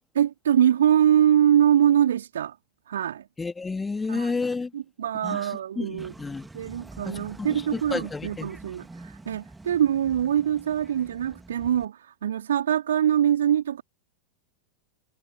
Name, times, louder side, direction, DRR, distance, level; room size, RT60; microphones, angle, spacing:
voice 1, 0.1-2.6 2.9-3.3 4.1-4.4 4.7-6.1 6.5-13.8, right 10 dB, 65° right, 3.0 m, -23 dB
voice 2, 3.4-4.7 5.2-5.5 5.8-6.5 7.1-8.5, left 4 dB, 10° left, 2.5 m, -31 dB
sound 1, 6.0-11.9, right 2 dB, 10° right, 3.2 m, -46 dB
figure-of-eight pair, 90°, 0 cm